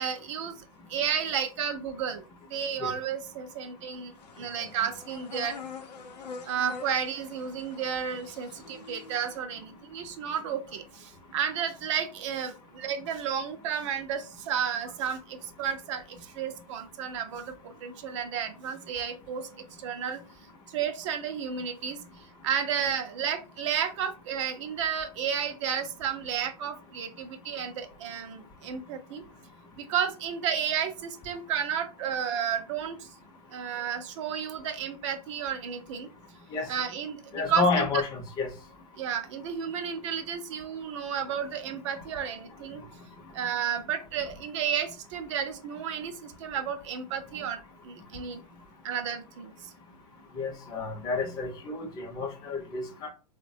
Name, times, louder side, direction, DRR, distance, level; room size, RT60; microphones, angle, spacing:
voice 1, 0.0-2.2 2.5-5.6 6.5-20.2 20.7-29.2 29.8-33.1 33.5-36.1 36.7-37.8 39.0-42.8 43.3-48.4 48.8-49.7, right 8 dB, 50° right, 7 dB, 0.4 m, -32 dB
sound 1, 4.2-9.4, left 5 dB, 90° left, 0.6 m, -45 dB
voice 2, 37.3-38.5 50.3-53.1, left 4 dB, 20° left, 3 dB, 0.6 m, -30 dB
3.2 x 2.1 x 2.6 m, 0.33 s
hypercardioid pair, 145°, 20 cm